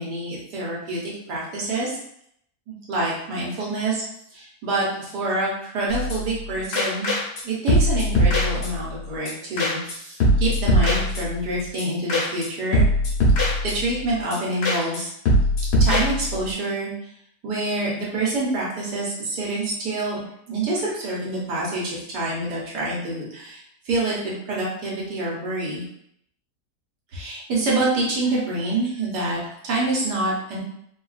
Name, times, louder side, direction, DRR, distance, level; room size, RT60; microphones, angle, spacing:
voice 1, 0.0-2.0 2.7-4.0 4.3-7.1 7.4-12.8 13.6-15.1 15.8-16.9 17.4-20.2 20.5-25.8 27.1-30.6, right 2 dB, 85° right, -5 dB, 1.5 m, -26 dB
sound 1, 5.9-6.4 6.7-7.4 7.7-9.0 9.3-9.4 9.6-9.9 10.2-11.5 11.8-11.9 12.1-12.5 12.7-14.0 14.3-14.4 14.6-15.0 15.3-16.5, left 1 dB, 75° left, 1.5 m, -21 dB
3.6 x 2.3 x 2.4 m, 0.72 s
omnidirectional pair, 1.8 m